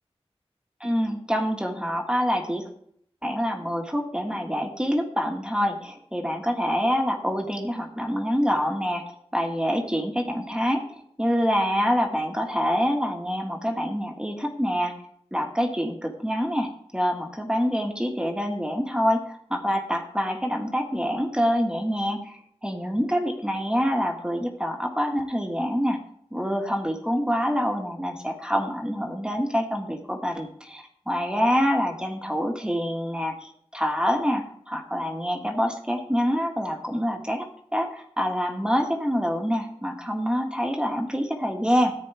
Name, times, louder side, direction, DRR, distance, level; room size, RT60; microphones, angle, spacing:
voice 1, 0.8-2.7 3.2-10.8 11.2-14.9 15.3-16.7 16.9-26.0 26.3-41.9, equal, 10° right, 2 dB, 1.6 m, -26 dB
14.5 x 9.5 x 3.5 m, 0.69 s
wide cardioid pair, 55°, 11 cm